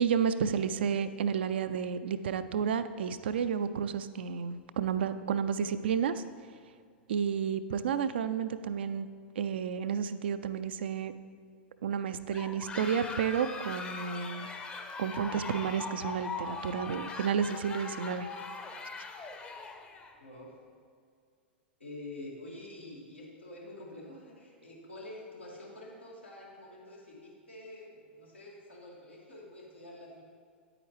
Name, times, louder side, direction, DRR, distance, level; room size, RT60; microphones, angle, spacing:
voice 1, 0.0-6.2 7.1-9.1 9.4-11.1 11.8-14.5 15.0-18.3, right 7 dB, 65° right, 12 dB, 0.4 m, -31 dB
sound 1, 12.3-20.1, left 4 dB, 20° left, 0.7 m, -41 dB
voice 2, 20.2-20.6 21.8-30.2, left 1 dB, 90° left, -5 dB, 2.2 m, -47 dB
9.2 x 8.7 x 3.2 m, 2.1 s
figure-of-eight pair, 95°, 6 cm